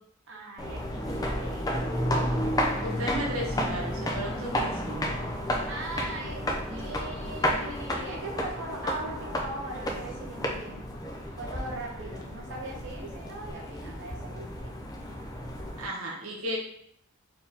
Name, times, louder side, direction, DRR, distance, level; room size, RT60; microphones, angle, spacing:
voice 1, 0.3-1.7 5.7-10.9 11.4-14.7, right 2 dB, 60° right, -1 dB, 0.8 m, -40 dB
sound 1, 0.6-15.9, equal, 20° left, 0.5 m, -32 dB
voice 2, 2.8-5.1 6.7-6.8 15.8-16.6, equal, 85° right, -2 dB, 1.2 m, -34 dB
4.4 x 3.6 x 2.8 m, 0.67 s
head